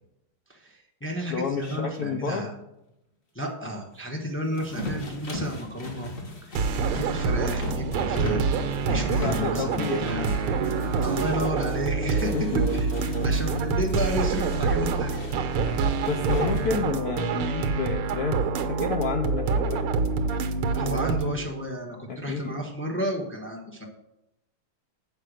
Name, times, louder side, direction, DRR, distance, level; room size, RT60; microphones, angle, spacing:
voice 1, 0.5-2.5 3.3-6.1 6.4-8.4 8.8-10.3 11.0-12.9 13.2-15.2 20.7-23.8, equal, 15° left, 0 dB, 0.4 m, -32 dB
voice 2, 1.3-2.5 9.2-10.2 12.3-12.6 16.1-19.9 22.1-22.6, left 6 dB, 75° left, 4 dB, 0.8 m, -30 dB
sound 1, 4.5-11.7 12.1-13.6 14.4-17.0, left 1 dB, 40° left, 1.7 m, -38 dB
sound 2, 6.6-21.3, right 4 dB, 85° right, 1.7 m, -26 dB
sound 3, 7.9-14.1, right 3 dB, 45° right, 0.4 m, -41 dB
7.5 x 5.1 x 6.3 m, 0.88 s
omnidirectional pair, 2.3 m